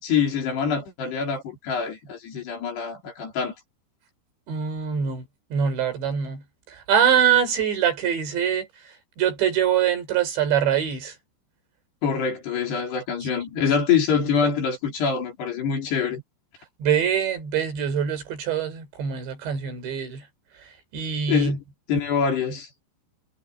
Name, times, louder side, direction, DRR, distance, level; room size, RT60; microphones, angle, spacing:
voice 1, 0.0-3.5 12.0-16.2 21.3-21.6 21.9-22.7, left 6 dB, 60° left, 6.2 m, -25 dB
voice 2, 4.5-5.3 5.5-11.2 14.4-14.5 16.8-20.3 20.5-21.6, right 8 dB, 70° right, 6.8 m, -24 dB
omnidirectional pair, 5.4 m